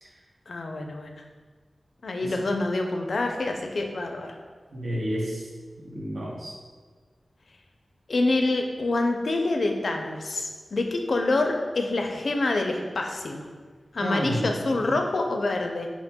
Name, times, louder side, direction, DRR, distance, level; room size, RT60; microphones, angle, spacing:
voice 1, 0.5-1.1 2.0-4.3 8.1-13.5 13.9-15.9, left 2 dB, 75° left, 3 dB, 0.4 m, -26 dB
voice 2, 4.7-5.5 5.8-6.5 14.0-15.0, equal, 85° right, -4 dB, 0.9 m, -31 dB
4.3 x 2.2 x 4.2 m, 1.5 s
wide cardioid pair, 90°, 0 cm